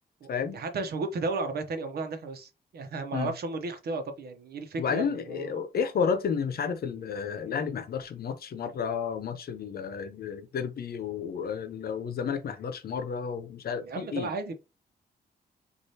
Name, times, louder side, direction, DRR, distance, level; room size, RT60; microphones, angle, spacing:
voice 1, 0.5-5.6 13.8-14.5, right 3 dB, 70° right, 0.9 m, -34 dB
voice 2, 4.8-14.3, left 6 dB, 70° left, 0.8 m, -31 dB
6.4 x 2.6 x 2.8 m
wide cardioid pair, 140°, 17 cm